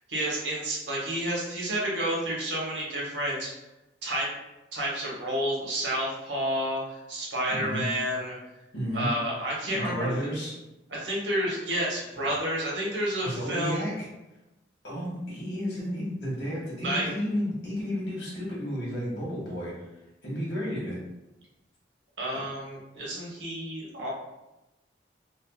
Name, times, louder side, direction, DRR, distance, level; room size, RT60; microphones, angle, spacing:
voice 1, 0.1-3.5 4.0-4.3 4.7-8.3 8.9-10.1 10.9-13.8 16.8-17.0 22.2-24.1, right 1 dB, 85° right, -4 dB, 1.0 m, -30 dB
voice 2, 7.5-7.8 8.7-9.1 9.7-10.5 13.2-14.0 14.8-19.8 20.2-21.0, equal, 85° left, -5 dB, 1.3 m, -32 dB
3.4 x 2.1 x 2.2 m, 0.97 s
head